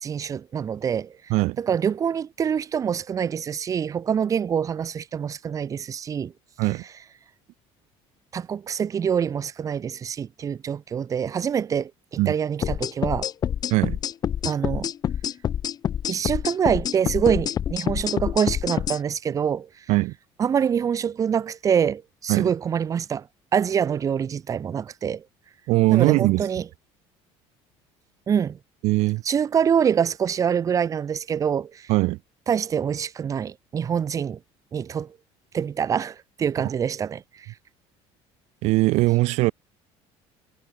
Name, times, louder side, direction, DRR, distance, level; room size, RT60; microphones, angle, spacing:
voice 1, 0.0-6.3 8.3-13.3 14.5-14.9 16.1-19.8 20.4-23.3 23.5-25.2 25.9-26.7 28.3-28.6 29.2-31.9 32.5-34.4 34.7-35.2 35.5-37.5, right 7 dB, 30° right, 2.0 m, -25 dB
sound 1, 12.6-19.0, left 9 dB, 35° left, 1.7 m, -27 dB
voice 2, 25.7-26.5 28.8-29.2 31.9-32.2 38.6-39.5, right 21 dB, 70° right, 2.2 m, -20 dB
cardioid pair, 155°, 12 cm